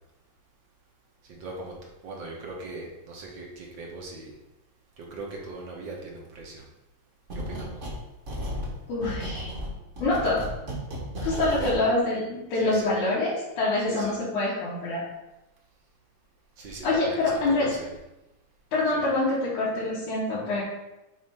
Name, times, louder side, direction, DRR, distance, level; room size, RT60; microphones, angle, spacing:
voice 1, 1.3-1.7 2.0-4.3 5.0-6.6 7.3-7.8 11.6-11.9 12.6-12.9 13.9-14.1 16.6-17.2 17.8-17.9 18.9-19.0, right 3 dB, 55° right, -1 dB, 1.3 m, -38 dB
sound 1, 7.3-8.0 8.3-11.8, equal, 40° right, 1.1 m, -34 dB
voice 2, 8.9-9.5 10.0-10.5 11.2-15.0 16.8-17.7 18.7-20.6, left 2 dB, 90° left, -9 dB, 3.1 m, -25 dB
8.2 x 2.8 x 5.5 m, 0.95 s
omnidirectional pair, 3.4 m